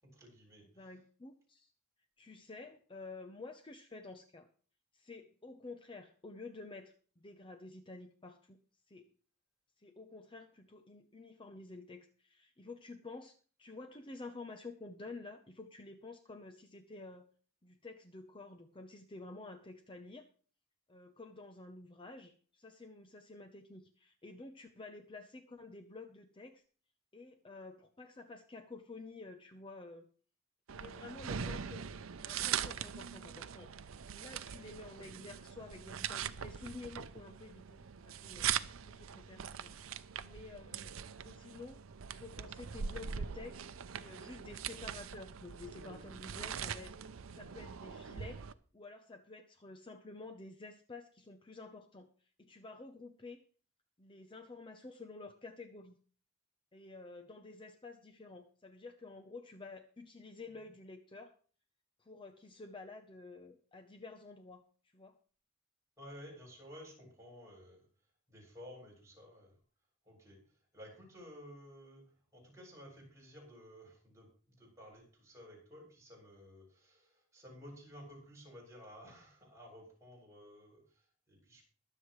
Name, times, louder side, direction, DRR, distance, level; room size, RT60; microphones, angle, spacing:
voice 1, 0.0-1.0 66.0-67.9 68.3-69.6 70.0-81.7, equal, 15° right, -3 dB, 7.1 m, -54 dB
voice 2, 0.7-1.7 2.2-4.5 4.9-8.6 8.9-9.1 9.8-17.3 17.6-20.3 20.9-26.6 27.1-30.1 30.7-31.8 32.2-33.8 34.1-38.5 38.9-39.8 40.2-40.9 41.2-41.8 42.1-43.6 43.9-48.4 48.7-53.4 54.0-56.0 56.7-61.3 62.0-65.2, left 3 dB, 25° left, 6 dB, 0.8 m, -51 dB
sound 1, 30.7-48.5, right 8 dB, 90° right, 0.6 m, -42 dB
22.5 x 7.7 x 3.2 m, 0.41 s
head